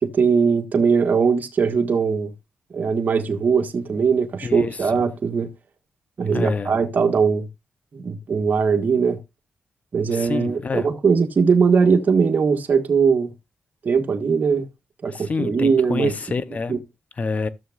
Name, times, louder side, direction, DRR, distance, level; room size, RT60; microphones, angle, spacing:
voice 1, 0.0-2.3 2.7-5.5 6.2-7.5 7.9-9.2 9.9-13.3 13.8-14.7 15.0-16.1 16.7-16.8, right 5 dB, 50° right, 1.5 m, -20 dB
voice 2, 4.4-5.0 6.3-6.8 10.1-10.9 15.1-16.7 17.2-17.5, left 4 dB, 40° left, 0.8 m, -27 dB
14.5 x 6.8 x 2.4 m
cardioid pair, 85°, 4 cm